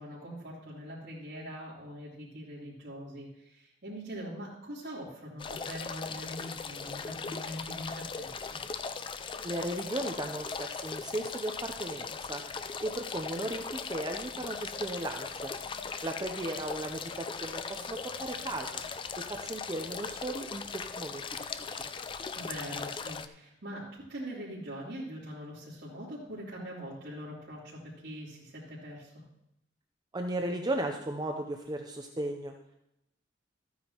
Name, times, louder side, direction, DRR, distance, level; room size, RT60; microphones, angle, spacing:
voice 1, 0.0-8.6 15.8-15.9 22.3-29.2, equal, 65° right, -10 dB, 3.1 m, -43 dB
sound 1, 5.4-23.3, left 5 dB, 25° left, 0.4 m, -39 dB
voice 2, 9.4-12.4 12.8-15.5 16.0-18.7 19.3-21.2 30.1-32.5, right 1 dB, 20° right, 4 dB, 0.6 m, -36 dB
14.0 x 9.5 x 2.9 m, 0.83 s
head